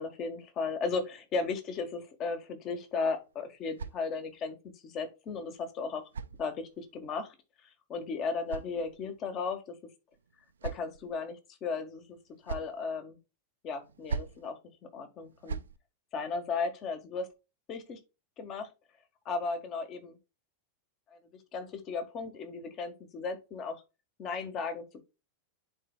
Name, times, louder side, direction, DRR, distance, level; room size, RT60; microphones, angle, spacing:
voice 1, 0.0-6.0 6.4-9.8 10.6-12.2 12.4-13.2 13.6-15.6 16.1-17.3 17.7-18.0 18.4-18.7 19.3-20.2 21.1-21.2 21.5-23.8 24.2-25.0, left 4 dB, 35° left, 8 dB, 1.6 m, -35 dB
sound 1, 2.9-4.5 5.5-7.0 8.0-9.3 10.1-11.2 12.1-12.8 13.8-14.5 15.2-15.8, right 5 dB, 70° right, 0.5 m, -42 dB
11.0 x 4.4 x 2.4 m, 0.27 s
figure-of-eight pair, 90°, 0 cm